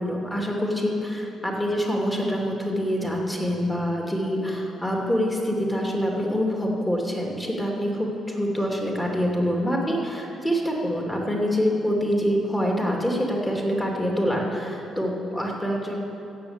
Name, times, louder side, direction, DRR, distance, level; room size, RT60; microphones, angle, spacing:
voice 1, 0.0-15.9, equal, 10° left, -1 dB, 2.7 m, -25 dB
16.0 x 7.0 x 8.7 m, 2.9 s
cardioid pair, 90°, 0 cm